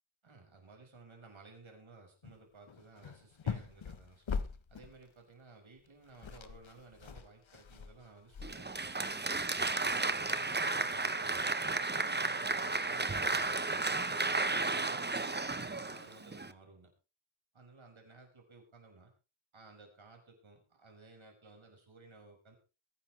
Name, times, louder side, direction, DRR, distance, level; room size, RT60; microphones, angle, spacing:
voice 1, 0.2-4.4 4.7-11.5 12.0-16.9 17.5-19.1 19.5-22.6, right 3 dB, 75° right, 2 dB, 6.0 m, -56 dB
sound 1, 2.2-2.4 2.7-5.0 5.8-5.9 6.1-8.9, left 6 dB, 70° left, 1.2 m, -41 dB
Applause, 8.4-16.5, right 3 dB, 20° right, 1.0 m, -33 dB
23.0 x 10.5 x 3.4 m, 0.31 s
wide cardioid pair, 85°, 48 cm